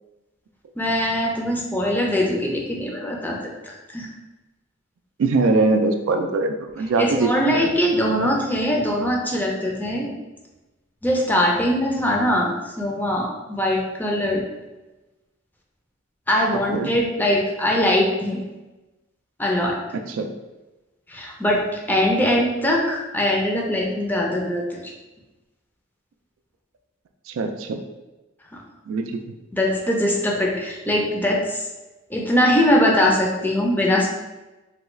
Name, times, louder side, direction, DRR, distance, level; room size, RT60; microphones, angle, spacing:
voice 1, 0.8-3.4 3.6-4.1 7.0-10.1 11.0-14.4 16.3-18.4 19.4-19.8 21.1-24.9 29.5-31.6 32.1-34.1, left 1 dB, 10° left, -1 dB, 0.5 m, -21 dB
voice 2, 5.2-7.7 16.7-16.9 20.1-20.3 27.3-27.8 28.9-29.2, right 3 dB, 85° right, 5 dB, 0.3 m, -22 dB
3.3 x 2.3 x 3.1 m, 1.1 s
head